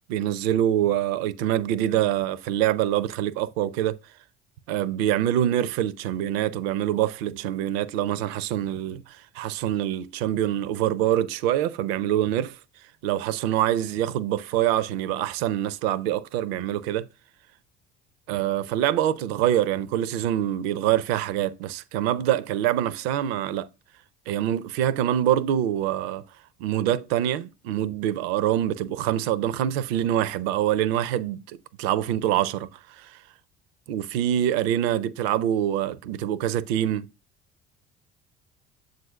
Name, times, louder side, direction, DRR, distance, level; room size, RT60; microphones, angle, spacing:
voice 1, 0.1-4.0 4.7-12.6 13.0-17.1 18.3-23.7 24.3-26.2 26.6-32.7 33.0-33.2 33.9-37.1, right 11 dB, 60° right, 0.5 m, -25 dB
7.5 x 2.6 x 5.2 m
figure-of-eight pair, 55°, 35 cm